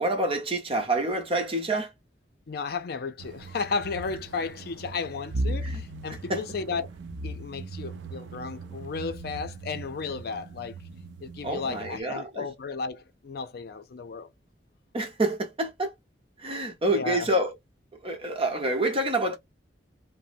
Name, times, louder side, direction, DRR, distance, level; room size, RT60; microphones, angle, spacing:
voice 1, 0.0-1.9 5.6-5.8 6.3-6.4 11.4-12.4 14.9-15.9 16.4-17.5 18.0-19.4, right 1 dB, 35° right, 0.9 m, -27 dB
voice 2, 2.5-6.9 7.2-10.8 11.2-14.3 16.9-17.3, left 4 dB, 60° left, 0.5 m, -34 dB
sound 1, 3.2-12.0, right 2 dB, 90° right, 0.4 m, -38 dB
3.1 x 2.1 x 2.5 m
head